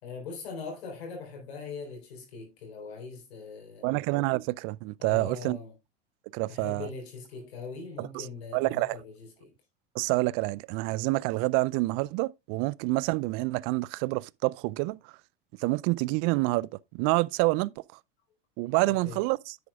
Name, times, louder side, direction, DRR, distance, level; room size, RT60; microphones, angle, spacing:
voice 1, 0.0-3.9 5.0-5.7 6.5-9.5 19.0-19.2, left 5 dB, 75° left, 4.1 m, -41 dB
voice 2, 3.8-5.6 6.3-6.9 8.0-8.2 8.5-9.0 9.9-15.0 15.6-17.7 18.6-19.6, right 22 dB, 45° right, 0.4 m, -27 dB
9.8 x 8.6 x 2.3 m
hypercardioid pair, 80°, 31 cm